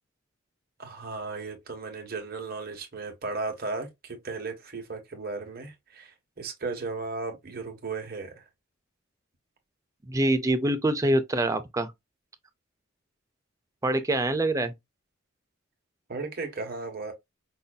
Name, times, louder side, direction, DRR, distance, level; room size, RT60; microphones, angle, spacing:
voice 1, 0.8-8.4 16.1-17.1, right 3 dB, 50° right, 1.2 m, -35 dB
voice 2, 10.0-11.9 13.8-14.7, right 1 dB, 15° right, 0.5 m, -25 dB
5.4 x 2.6 x 2.3 m
head